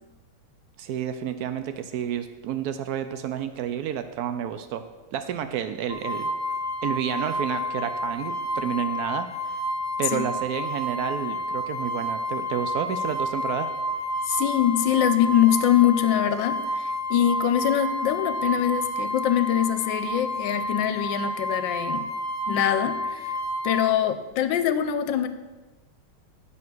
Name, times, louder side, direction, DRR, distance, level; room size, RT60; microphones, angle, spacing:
voice 1, 0.8-4.8 5.1-6.3 6.8-9.6 10.0-13.7, right 9 dB, 85° right, 9 dB, 0.8 m, -30 dB
sound 1, 5.9-23.9, equal, 10° left, 0.9 m, -30 dB
voice 2, 14.3-22.1 22.5-23.3 23.6-25.3, left 11 dB, 75° left, 11 dB, 1.2 m, -23 dB
9.0 x 5.9 x 6.1 m, 1.2 s
omnidirectional pair, 2.2 m